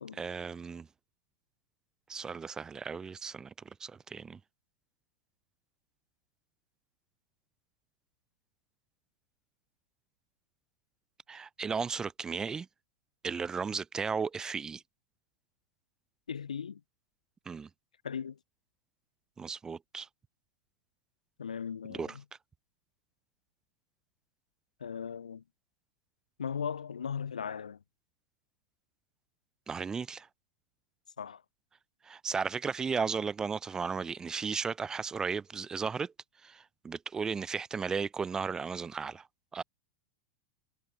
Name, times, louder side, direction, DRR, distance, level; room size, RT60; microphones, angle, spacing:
voice 1, 0.1-0.9 2.1-3.5 3.8-4.4 11.3-12.7 13.2-14.8 17.5-17.7 19.4-20.1 21.9-22.2 29.7-30.3 32.0-36.1 36.4-39.3 39.5-39.6, right 5 dB, 15° right, 0.4 m, -35 dB
voice 2, 16.3-16.8 18.0-18.4 21.4-22.2 24.8-25.4 26.4-27.8 31.2-31.4, left 7 dB, 85° left, 0.4 m, -37 dB
hypercardioid pair, 100°, 4 cm